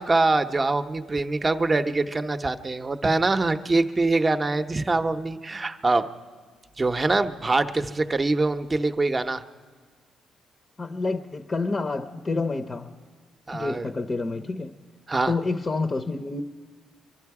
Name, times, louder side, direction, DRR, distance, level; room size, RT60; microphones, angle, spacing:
voice 1, 0.0-6.1 6.8-9.4 13.5-13.9 15.1-15.3, right 3 dB, 25° right, 0.7 m, -24 dB
voice 2, 10.8-12.9 13.5-14.8 15.3-16.4, left 3 dB, 30° left, 0.6 m, -28 dB
24.0 x 12.0 x 4.8 m
cardioid pair, 90°, 0 cm